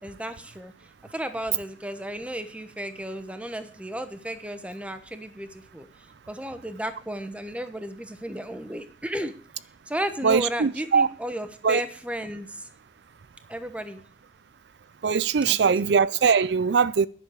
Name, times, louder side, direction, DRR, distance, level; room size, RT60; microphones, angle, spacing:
voice 1, 0.0-0.7 1.1-5.9 6.3-9.3 9.9-12.7 13.5-14.0 15.5-15.8, equal, 5° right, 1.1 m, -34 dB
voice 2, 10.2-11.1 11.6-11.8 15.0-17.1, right 6 dB, 75° right, 0.4 m, -21 dB
10.5 x 6.6 x 8.2 m
head